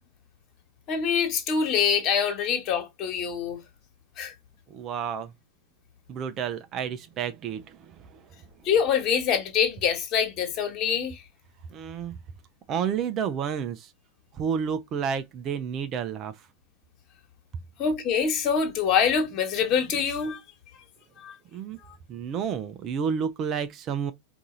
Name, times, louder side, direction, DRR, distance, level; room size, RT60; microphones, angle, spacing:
voice 1, 0.9-3.6 4.2-4.3 8.6-11.2 17.8-20.4 21.2-21.3, left 7 dB, 35° left, 1.5 m, -25 dB
voice 2, 4.7-5.3 6.1-8.4 11.7-12.2 12.7-13.9 14.3-16.5 21.5-21.8 22.1-24.1, right 7 dB, 30° right, 0.5 m, -30 dB
4.7 x 2.6 x 3.9 m
figure-of-eight pair, 90°, 0 cm